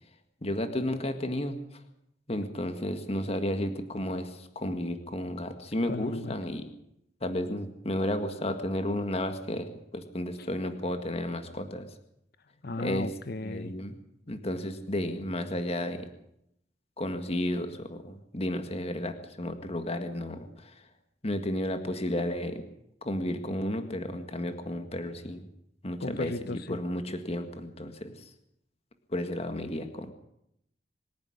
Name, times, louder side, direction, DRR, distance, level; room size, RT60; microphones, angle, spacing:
voice 1, 0.4-1.6 2.3-6.6 7.2-11.9 12.8-13.1 13.4-13.9 14.3-16.1 17.0-20.7 21.2-22.6 23.0-25.4 25.8-28.1 29.1-30.1, left 1 dB, 35° left, 1.8 m, -32 dB
voice 2, 5.9-6.3 12.6-13.7 26.0-26.8, left 2 dB, 60° left, 1.0 m, -35 dB
25.5 x 10.5 x 9.9 m
head